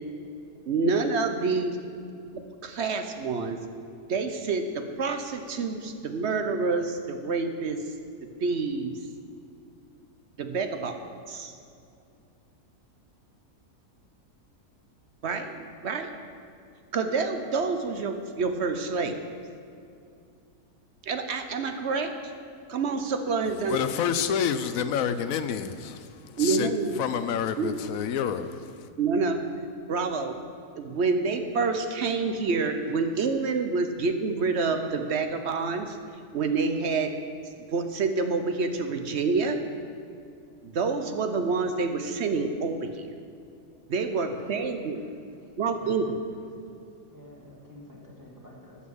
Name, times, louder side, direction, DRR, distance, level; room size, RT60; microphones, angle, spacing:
voice 1, 0.7-1.8 2.3-3.6 4.1-7.8 8.4-9.0 10.4-11.0 11.3-11.5 15.2-16.1 16.9-19.3 21.1-22.1 22.7-23.8 26.3-27.0 27.6-27.7 29.0-29.4 29.9-30.3 30.8-36.0 36.3-37.1 37.7-39.6 40.6-43.1 43.9-45.0 45.6-46.2, right 4 dB, 55° right, 0.9 m, -27 dB
voice 2, 23.7-26.7 27.0-28.9, left 8 dB, 70° left, 1.0 m, -29 dB
voice 3, 45.4-46.0 46.6-46.8 47.1-48.9, left 1 dB, 15° right, 1.9 m, -50 dB
12.5 x 5.8 x 7.8 m
omnidirectional pair, 1.6 m